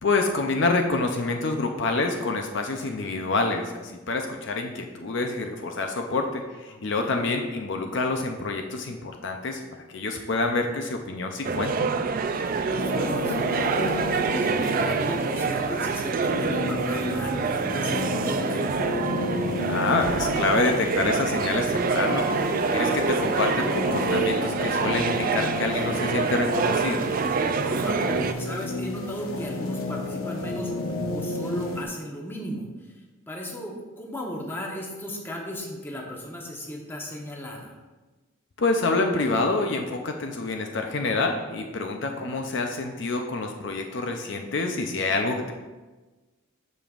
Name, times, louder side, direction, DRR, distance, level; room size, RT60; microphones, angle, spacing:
voice 1, 0.0-9.6 9.9-11.7 19.6-27.1 38.6-45.5, left 3 dB, 60° left, 4 dB, 0.6 m, -27 dB
voice 2, 6.7-7.1 12.1-18.8 27.3-30.7 31.1-33.0 33.3-37.7 41.7-42.3, equal, 10° left, -1 dB, 1.0 m, -36 dB
sound 1, 11.4-28.3, right 5 dB, 40° right, 0.3 m, -26 dB
sound 2, 12.8-31.8, left 2 dB, 85° left, 1.0 m, -32 dB
13.0 x 5.2 x 2.5 m, 1.2 s
head